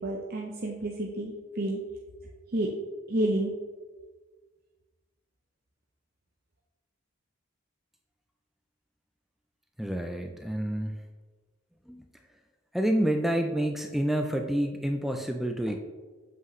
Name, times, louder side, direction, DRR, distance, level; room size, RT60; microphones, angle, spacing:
voice 1, 0.0-1.8 2.5-2.7 3.1-3.5, right 1 dB, 50° right, -1 dB, 0.6 m, -30 dB
voice 2, 9.8-11.0 11.9-12.0 12.7-15.8, right 1 dB, ahead, 4 dB, 0.3 m, -28 dB
7.5 x 5.5 x 3.1 m, 1.4 s
head